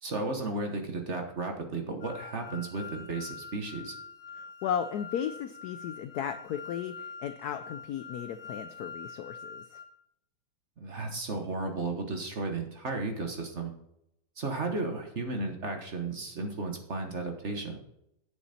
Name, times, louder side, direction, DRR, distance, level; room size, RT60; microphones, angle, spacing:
voice 1, 0.0-4.0 10.8-13.7 14.4-17.8, right 3 dB, 40° right, 4 dB, 1.3 m, -34 dB
sound 1, 2.0-9.8, left 5 dB, 45° left, 1.7 m, -45 dB
voice 2, 4.6-9.8, left 8 dB, 80° left, 10 dB, 0.9 m, -35 dB
8.8 x 7.0 x 4.2 m, 0.79 s
omnidirectional pair, 2.2 m